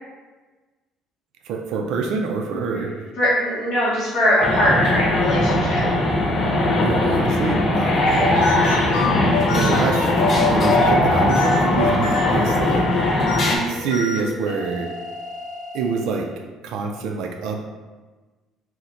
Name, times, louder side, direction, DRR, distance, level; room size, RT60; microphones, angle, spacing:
voice 1, 1.4-3.0 6.8-8.8 9.5-10.1 10.4-12.9 13.7-14.9 15.7-16.3 16.6-17.6, right 4 dB, 60° right, 2 dB, 0.3 m, -26 dB
voice 2, 3.2-5.8 9.1-9.3, equal, 45° left, -11 dB, 0.8 m, -21 dB
sound 1, 4.4-13.6, left 1 dB, 25° left, 0.4 m, -20 dB
sound 2, 7.9-16.2, left 3 dB, 80° left, 0.6 m, -26 dB
3.8 x 2.1 x 2.8 m, 1.3 s
cardioid pair, 175°, 0 cm